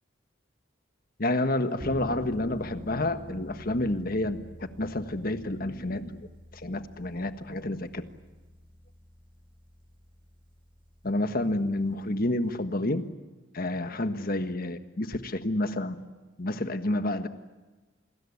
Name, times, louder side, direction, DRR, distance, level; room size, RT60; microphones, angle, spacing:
voice 1, 1.2-6.2 6.5-8.0 11.0-13.0 13.5-15.9 16.4-17.3, left 1 dB, 45° left, 9 dB, 1.6 m, -29 dB
sound 1, 1.8-12.6, equal, 25° right, 2.7 m, -47 dB
28.0 x 21.0 x 9.9 m, 1.2 s
head